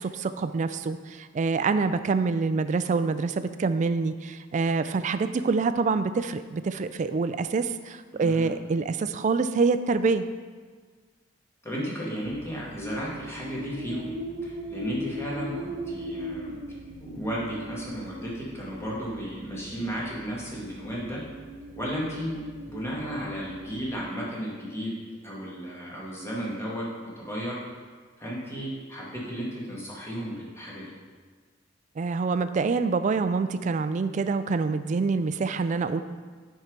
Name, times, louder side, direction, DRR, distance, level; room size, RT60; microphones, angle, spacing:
voice 1, 0.0-10.3 32.0-36.0, right 4 dB, 40° right, 11 dB, 0.3 m, -26 dB
voice 2, 8.1-8.5 11.6-14.1 14.4-21.2 21.8-24.9 25.2-27.6 28.2-30.9, equal, 15° left, -5 dB, 1.7 m, -34 dB
sound 1, 12.2-24.1, equal, 75° right, 0.8 m, -39 dB
7.2 x 4.7 x 5.2 m, 1.5 s
head